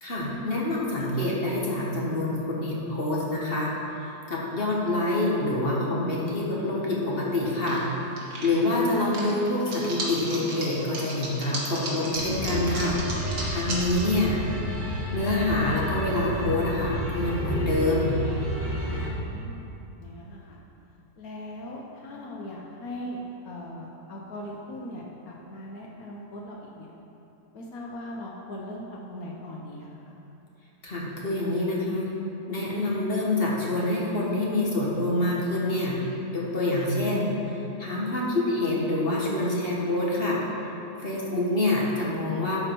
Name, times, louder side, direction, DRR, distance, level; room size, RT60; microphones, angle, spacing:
voice 1, 0.0-3.7 4.0-7.9 8.4-14.4 15.1-18.2 30.8-32.1 32.5-36.0 36.3-40.4 41.0-42.6, left 2 dB, 40° left, -4 dB, 1.4 m, -26 dB
sound 1, 7.5-7.8 8.2-14.0, right 2 dB, 80° right, 2.1 m, -34 dB
sound 2, 12.1-19.1, equal, 10° right, 1.2 m, -31 dB
voice 2, 18.9-20.6 21.2-26.9 27.5-30.1, left 1 dB, 65° left, -2 dB, 1.2 m, -40 dB
12.0 x 4.8 x 4.5 m, 2.9 s
omnidirectional pair, 1.7 m